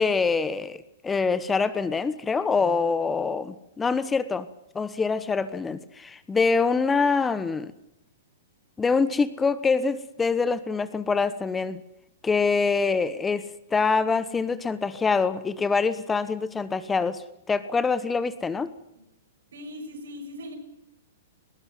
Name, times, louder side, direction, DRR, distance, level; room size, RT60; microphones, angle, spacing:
voice 1, 0.0-4.5 4.7-7.7 8.8-11.8 12.2-13.5 13.7-17.2 17.5-18.7, left 4 dB, 15° left, 14 dB, 1.1 m, -25 dB
voice 2, 19.5-20.5, left 1 dB, 80° right, 6 dB, 6.9 m, -39 dB
19.5 x 17.0 x 9.4 m, 0.85 s
hypercardioid pair, 130°, 0 cm